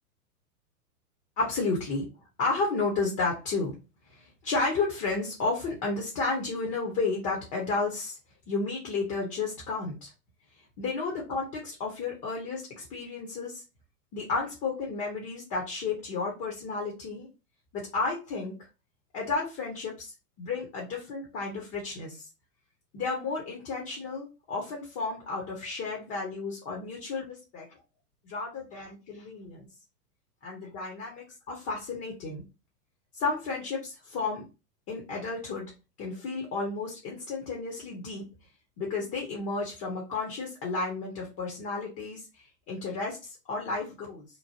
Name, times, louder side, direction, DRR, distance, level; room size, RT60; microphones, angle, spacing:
voice 1, 1.4-2.1 2.4-3.8 4.1-8.2 8.5-10.1 10.8-13.6 14.1-17.3 17.7-18.6 19.1-22.3 22.9-27.7 28.2-29.7 30.4-32.4 33.1-34.5 34.9-35.7 36.0-38.3 38.8-44.3, left 3 dB, 30° left, -1 dB, 0.9 m, -32 dB
3.0 x 2.1 x 2.7 m, 0.28 s
hypercardioid pair, 115°, 47 cm